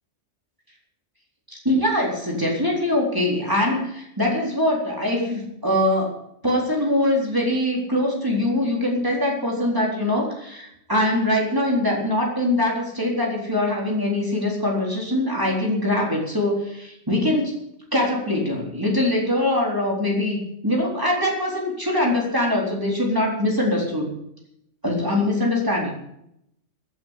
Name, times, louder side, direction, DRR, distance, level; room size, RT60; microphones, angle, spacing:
voice 1, 1.5-6.2 6.4-17.5 17.9-24.1 24.8-25.9, left 1 dB, 15° right, -2 dB, 4.1 m, -23 dB
15.0 x 9.0 x 8.4 m, 0.77 s
omnidirectional pair, 1.2 m